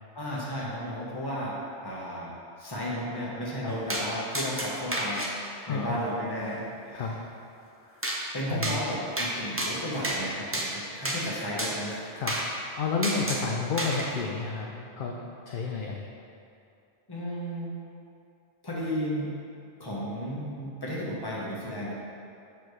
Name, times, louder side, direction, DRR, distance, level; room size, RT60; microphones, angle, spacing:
voice 1, 0.1-2.3 2.6-5.3 5.7-7.1 8.3-12.0 17.1-17.7 18.6-19.3 19.8-21.9, equal, 20° left, -6 dB, 1.2 m, -33 dB
sound 1, 3.9-4.1 4.3-5.3 8.0-8.2 8.6-8.8 9.2-9.3 9.6-10.2 10.5-10.7 11.0-11.2 11.6-11.7 12.3-12.5 13.0-13.4 13.8-14.0, right 1 dB, 15° right, 0.5 m, -30 dB
voice 2, 5.7-6.0 6.9-7.2 7.8-8.1 8.5-8.8 12.1-15.2 15.5-16.0, left 4 dB, 60° left, -1 dB, 0.6 m, -31 dB
7.1 x 6.0 x 3.2 m, 2.5 s
omnidirectional pair, 1.2 m